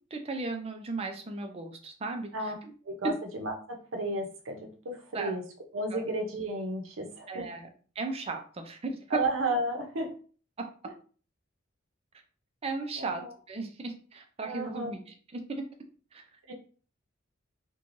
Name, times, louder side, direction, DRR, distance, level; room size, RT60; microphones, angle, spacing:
voice 1, 0.1-2.7 5.1-5.3 5.9-6.0 7.3-7.7 8.0-9.2 10.6-10.7 12.6-15.6 16.1-16.3, right 3 dB, 30° right, 5 dB, 0.4 m, -36 dB
voice 2, 2.8-4.6 4.8-5.4 5.7-7.5 9.1-10.1 13.0-13.3 14.4-15.0 16.5-16.6, right 2 dB, 75° right, 3 dB, 0.7 m, -33 dB
3.1 x 2.2 x 2.5 m, 0.40 s
head